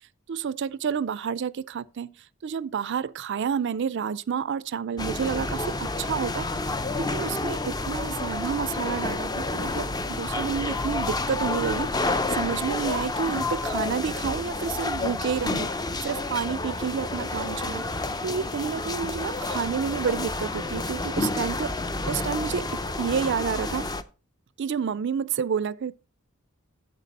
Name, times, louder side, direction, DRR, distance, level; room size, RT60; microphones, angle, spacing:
voice 1, 0.3-2.2 2.4-6.5 6.9-15.7 16.0-17.8 18.2-21.7 22.1-23.9 24.6-25.9, right 7 dB, 55° right, 0.4 m, -29 dB
sound 1, 5.0-24.0, left 2 dB, 20° left, 0.5 m, -29 dB
9.2 x 7.5 x 4.1 m
head